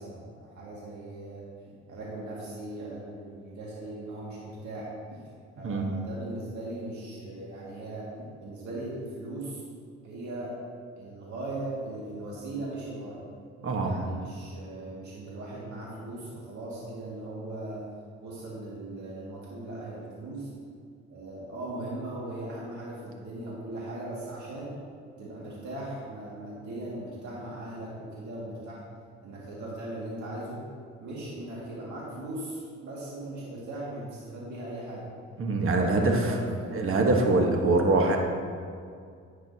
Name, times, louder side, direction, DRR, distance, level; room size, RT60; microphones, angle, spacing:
voice 1, 0.0-1.5 1.9-4.9 5.6-8.1 8.4-9.6 10.0-10.6 11.0-13.2 13.8-17.8 18.2-20.5 21.1-24.8 25.2-28.8 29.2-30.6 31.0-35.1 35.7-37.0, right 1 dB, 70° right, -6 dB, 2.2 m, -38 dB
voice 2, 13.6-13.9 35.4-36.2 36.7-38.2, right 2 dB, 45° right, 2 dB, 1.3 m, -23 dB
10.5 x 8.6 x 2.9 m, 2.2 s
cardioid pair, 90°, 30 cm